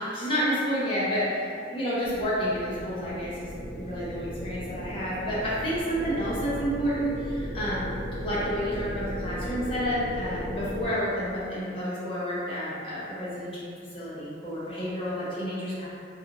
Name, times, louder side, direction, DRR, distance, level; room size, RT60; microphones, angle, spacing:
voice 1, 0.0-7.9 8.2-13.5 13.9-15.9, equal, 30° left, -9 dB, 0.7 m, -30 dB
sound 1, 2.0-10.9, equal, 10° right, 0.7 m, -36 dB
2.7 x 2.4 x 2.6 m, 2.2 s
head